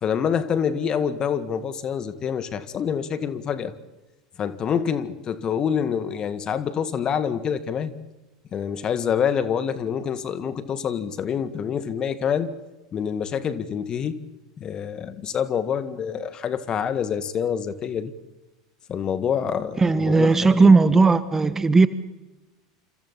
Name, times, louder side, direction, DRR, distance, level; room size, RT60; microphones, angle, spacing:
voice 1, 0.0-3.7 4.4-7.9 8.5-12.5 12.9-14.2 14.6-18.1 18.9-20.7, left 7 dB, 35° left, 12 dB, 1.9 m, -26 dB
voice 2, 19.8-21.9, right 4 dB, 15° right, 13 dB, 1.3 m, -16 dB
28.5 x 27.5 x 4.2 m, 1.1 s
figure-of-eight pair, 80°, 2 cm